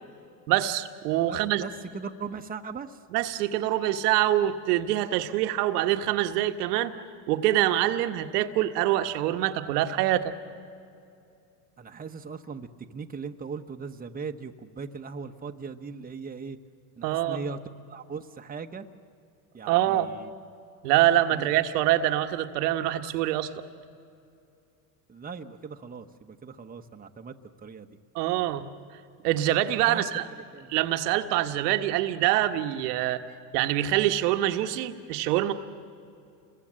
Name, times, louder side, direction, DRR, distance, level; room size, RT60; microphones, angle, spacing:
voice 1, 0.5-1.6 3.1-6.9 7.3-10.3 17.0-17.4 19.7-20.1 20.8-23.5 28.1-28.6 29.2-30.2 30.7-33.2 33.5-35.5, right 13 dB, 85° right, 8 dB, 1.4 m, -25 dB
voice 2, 1.3-3.0 11.8-16.6 17.0-17.6 17.9-18.9 19.5-20.3 21.3-21.6 25.1-28.0 29.7-30.0 30.5-30.7, right 5 dB, 20° right, 6 dB, 1.1 m, -39 dB
29.0 x 22.0 x 7.6 m, 2.6 s
supercardioid pair, 105°, 46 cm